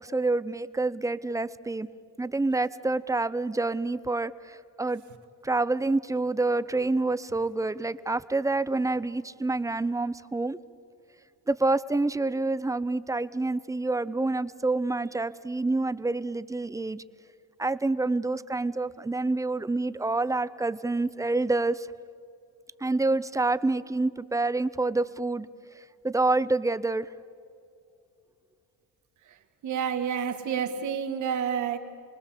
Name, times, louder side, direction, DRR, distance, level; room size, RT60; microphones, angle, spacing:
voice 1, 0.0-1.9 2.2-5.0 5.4-10.6 11.5-17.0 17.6-21.9 22.8-25.5 26.0-27.1, right 2 dB, 10° right, 15 dB, 0.6 m, -27 dB
voice 2, 29.6-31.8, right 7 dB, 70° right, 7 dB, 2.0 m, -29 dB
29.0 x 20.0 x 7.4 m, 2.5 s
cardioid pair, 105°, 31 cm